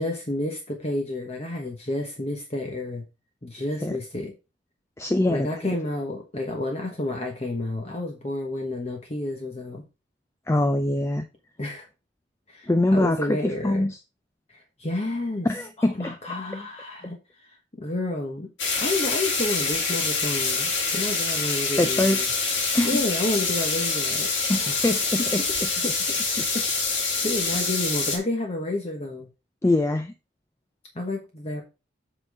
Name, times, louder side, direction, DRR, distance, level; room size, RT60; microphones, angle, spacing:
voice 1, 0.0-3.0 3.4-4.3 5.3-9.8 11.6-11.9 12.5-13.8 14.5-15.5 15.8-17.2 17.8-22.3 22.8-24.3 24.7-25.1 25.8-25.9 26.4-29.3 30.9-31.6, left 1 dB, 35° left, 1.1 m, -30 dB
voice 2, 5.0-5.7 10.5-11.3 12.7-14.0 15.5-16.2 21.8-22.2 22.7-23.0 24.5-25.7 27.4-27.6 29.6-30.1, left 1 dB, 15° left, 0.4 m, -24 dB
sound 1, 18.6-28.2, left 4 dB, 75° left, 2.1 m, -26 dB
7.8 x 4.0 x 4.8 m
head